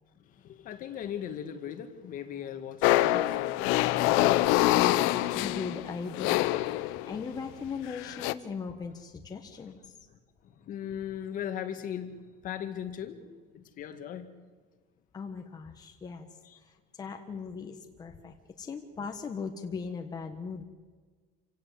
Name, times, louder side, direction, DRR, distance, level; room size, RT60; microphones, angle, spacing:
voice 1, 0.2-5.4 6.9-7.2 9.6-9.7 10.1-13.3 13.5-14.3 16.4-16.6, left 9 dB, 45° left, 1.9 m, -39 dB
sound 1, 2.8-7.3 7.9-8.3, left 16 dB, 90° left, 1.0 m, -25 dB
voice 2, 5.3-6.5 6.8-9.9 15.1-16.3 16.6-20.6, left 5 dB, 20° left, 1.5 m, -39 dB
27.0 x 17.0 x 8.3 m
cardioid pair, 165°, 20 cm